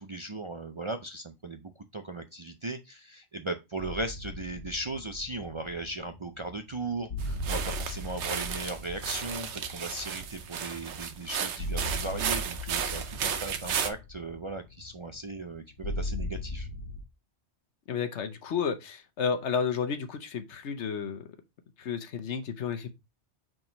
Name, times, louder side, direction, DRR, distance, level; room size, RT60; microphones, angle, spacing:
voice 1, 0.0-16.7, right 2 dB, 40° right, 0.5 m, -37 dB
sound 1, 3.8-17.0, left 1 dB, 55° left, 1.3 m, -39 dB
sound 2, 7.2-13.9, right 7 dB, 75° right, 1.0 m, -34 dB
voice 2, 17.9-21.3 21.8-22.9, left 6 dB, 75° left, 1.2 m, -32 dB
4.7 x 3.8 x 5.2 m
omnidirectional pair, 1.2 m